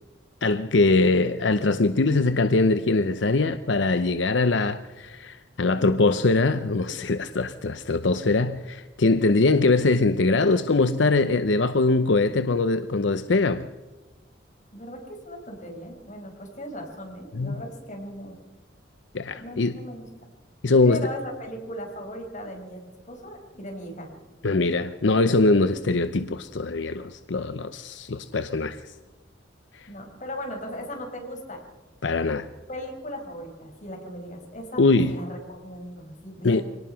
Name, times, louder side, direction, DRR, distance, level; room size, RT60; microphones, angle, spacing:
voice 1, 0.4-13.7 17.3-17.6 19.1-19.8 20.6-21.1 24.4-28.9 29.7-29.9 32.0-32.5 34.8-35.1 36.4-36.6, left 3 dB, 75° left, 0.7 m, -22 dB
voice 2, 14.7-18.4 19.4-20.1 20.8-24.1 29.9-31.6 32.7-36.6, left 1 dB, 40° left, 5.2 m, -38 dB
24.5 x 18.5 x 5.7 m
head